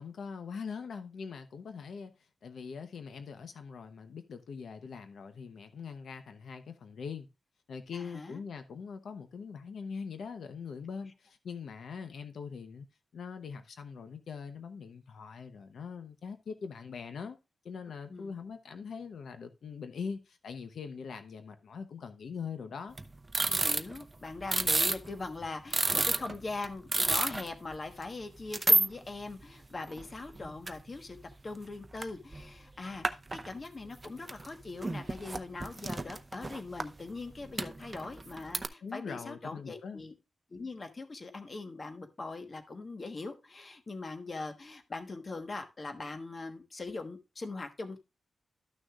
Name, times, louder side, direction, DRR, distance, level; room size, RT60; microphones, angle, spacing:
voice 1, 0.0-7.3 7.7-12.9 13.1-17.4 17.6-23.0 38.8-40.0, left 6 dB, 85° left, 0.8 m, -42 dB
voice 2, 7.9-8.4 18.1-18.3 23.5-31.2 31.4-40.1 40.5-48.0, left 3 dB, 35° left, 1.2 m, -41 dB
sound 1, 23.0-25.1 25.4-25.5 25.7-27.5 27.7-27.8 28.5-28.9 29.4-29.5 29.9-30.7 31.2-31.3 31.8-32.0 32.3-32.5 33.0-33.5 34.0-34.5 34.8-36.8 37.6-38.7, right 2 dB, 25° right, 0.7 m, -29 dB
13.0 x 6.4 x 2.4 m
wide cardioid pair, 135°, 0 cm